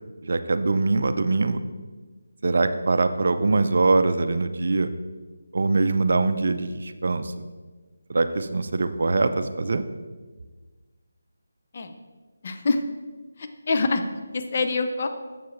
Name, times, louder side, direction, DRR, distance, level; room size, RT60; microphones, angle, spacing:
voice 1, 0.2-1.6 2.4-4.9 5.5-7.4 8.1-9.8, right 3 dB, 60° right, 10 dB, 0.4 m, -23 dB
voice 2, 12.4-12.8 13.4-14.0 14.3-15.1, left 3 dB, 45° left, 6 dB, 0.6 m, -25 dB
7.1 x 6.8 x 3.1 m, 1.4 s
figure-of-eight pair, 160°, 0 cm